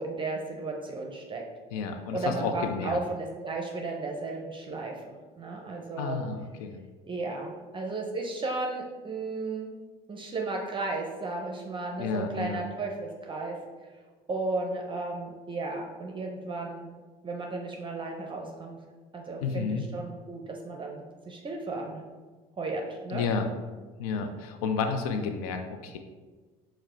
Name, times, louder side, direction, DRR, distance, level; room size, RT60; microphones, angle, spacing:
voice 1, 0.0-1.4 1.8-6.2 7.0-9.7 10.1-13.6 13.8-14.0 14.3-16.9 17.2-18.8 19.1-22.0 22.5-23.3, right 3 dB, 25° right, 1 dB, 0.6 m, -34 dB
voice 2, 1.7-3.0 6.0-6.8 12.0-12.6 19.4-19.8 23.1-23.5 24.0-26.0, left 5 dB, 90° left, 6 dB, 0.4 m, -31 dB
4.6 x 2.1 x 4.3 m, 1.4 s
hypercardioid pair, 75°, 18 cm